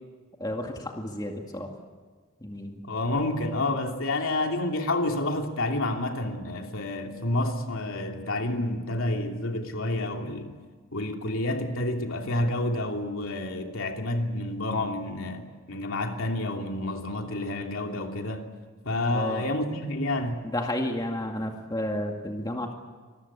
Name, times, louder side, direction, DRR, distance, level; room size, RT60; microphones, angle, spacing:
voice 1, 0.4-1.7 2.4-2.8 19.1-19.4 20.4-22.7, left 1 dB, 20° left, 2.1 m, -31 dB
voice 2, 2.9-10.5 10.9-18.4 18.8-20.5, left 1 dB, 65° left, 2.9 m, -29 dB
25.5 x 22.0 x 8.5 m
head